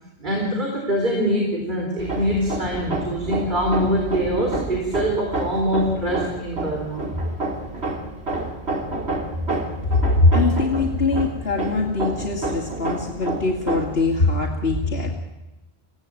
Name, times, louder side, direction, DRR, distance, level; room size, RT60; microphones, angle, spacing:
voice 1, 0.2-7.0, equal, 45° right, 0 dB, 4.2 m, -24 dB
Hammer, 2.0-14.1, right 2 dB, 70° right, 3.1 m, -29 dB
voice 2, 9.9-15.1, left 2 dB, 65° left, 0 dB, 2.3 m, -21 dB
24.0 x 16.5 x 9.0 m, 0.98 s
omnidirectional pair, 1.1 m